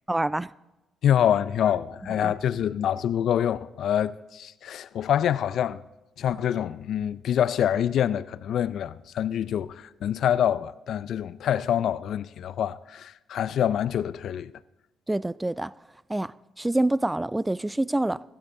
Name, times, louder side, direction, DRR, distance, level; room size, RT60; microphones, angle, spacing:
voice 1, 0.1-0.5 2.2-2.3 15.1-15.7 16.1-18.2, right 1 dB, 15° right, 0.3 m, -26 dB
voice 2, 1.0-5.8 6.2-14.5, left 10 dB, 65° left, 0.4 m, -26 dB
16.0 x 12.5 x 3.7 m
hypercardioid pair, 55°, 0 cm